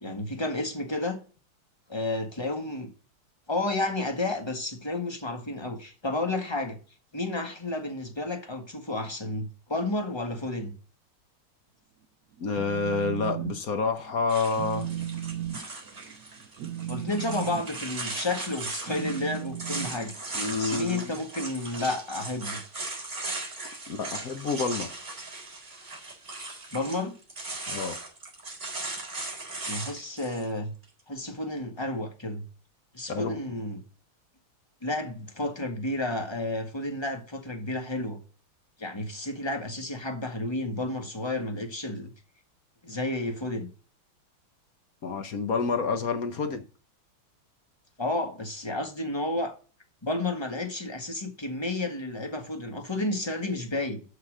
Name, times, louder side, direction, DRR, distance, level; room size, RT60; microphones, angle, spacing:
voice 1, 0.0-1.2 1.9-2.9 3.5-6.8 7.1-10.7 16.9-20.1 20.6-22.6 26.7-27.1 29.7-30.7 31.1-32.4 32.9-33.8 34.8-38.2 38.8-42.1 42.8-43.7 48.0-49.5 50.0-54.0, left 2 dB, 15° left, 1.5 m, -31 dB
Telephone, 12.3-13.6 13.9-14.2 14.5-20.7, right 11 dB, 85° right, 0.8 m, -36 dB
voice 2, 12.4-14.9 20.3-21.1 23.9-25.0 27.7-28.0 33.1-33.4 45.0-46.6, left 4 dB, 50° left, 1.2 m, -28 dB
sound 1, 14.3-30.4, right 2 dB, 25° right, 4.2 m, -38 dB
7.9 x 5.8 x 6.5 m
omnidirectional pair, 2.3 m